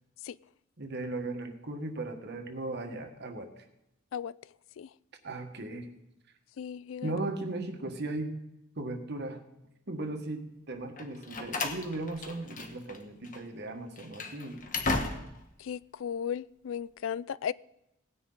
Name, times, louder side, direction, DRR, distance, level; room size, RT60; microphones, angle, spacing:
voice 1, 0.8-3.6 5.2-5.9 7.0-8.3 8.8-9.4 9.9-15.0, right 2 dB, 60° right, 1.5 m, -37 dB
voice 2, 6.6-7.1 15.6-17.5, left 8 dB, 85° left, 0.3 m, -35 dB
Slam, 11.0-13.0 13.2-13.4 13.9-15.5, left 3 dB, 45° left, 1.4 m, -35 dB
17.5 x 9.9 x 3.9 m
head